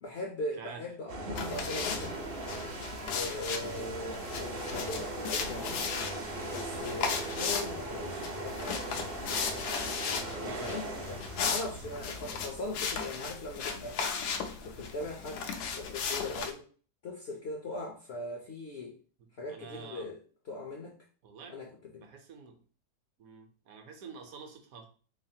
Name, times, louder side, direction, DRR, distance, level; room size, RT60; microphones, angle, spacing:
voice 1, 0.0-2.2 3.0-5.9 6.5-8.8 10.3-14.0 14.6-15.5 15.8-16.6 17.0-19.0 19.4-20.2 20.5-21.0 21.5-21.7 21.9-22.1, left 2 dB, 60° left, 0 dB, 0.7 m, -40 dB
voice 2, 0.5-0.9 3.5-3.8 10.4-10.7 19.2-20.1 21.2-21.6 21.9-22.6 23.2-24.9, right 5 dB, 65° right, 5 dB, 1.1 m, -48 dB
sound 1, 1.1-12.5, right 2 dB, 50° right, 0.7 m, -39 dB
sound 2, 1.3-16.5, left 5 dB, 80° left, 1.1 m, -36 dB
3.8 x 3.2 x 2.7 m, 0.41 s
omnidirectional pair, 1.7 m